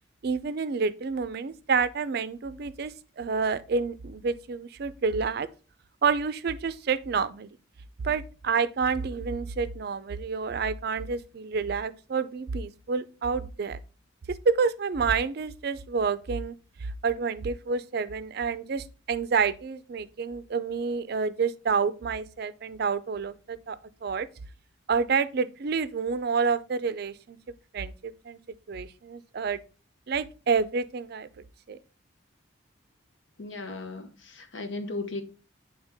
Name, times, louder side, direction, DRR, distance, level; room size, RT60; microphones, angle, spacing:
voice 1, 0.2-5.5 6.0-7.5 8.0-13.8 14.3-16.6 16.8-24.3 24.9-27.4 27.7-28.4 28.7-29.6 30.1-31.3 31.7-31.8, right 5 dB, 55° right, 0.4 m, -28 dB
voice 2, 33.4-35.2, left 3 dB, 75° left, 0.9 m, -36 dB
8.1 x 3.4 x 3.5 m
head